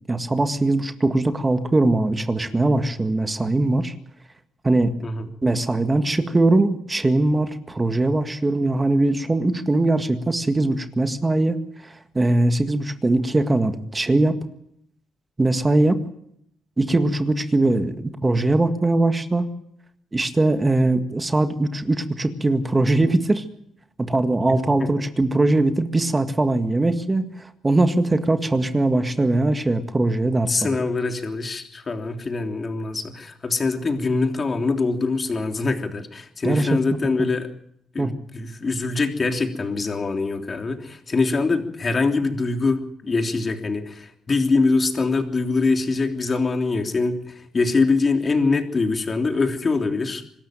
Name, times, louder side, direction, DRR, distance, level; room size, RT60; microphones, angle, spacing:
voice 1, 0.1-3.9 4.6-4.9 5.4-14.4 15.4-16.0 16.8-19.5 20.1-23.4 24.0-30.6 36.4-36.8 37.1-37.3 38.0-38.1, right 2 dB, 20° right, 8 dB, 1.8 m, -21 dB
voice 2, 24.5-24.9 30.5-37.5 37.9-50.2, left 3 dB, 35° left, 5 dB, 3.2 m, -23 dB
25.0 x 13.0 x 9.1 m, 0.74 s
cardioid pair, 90°, 0 cm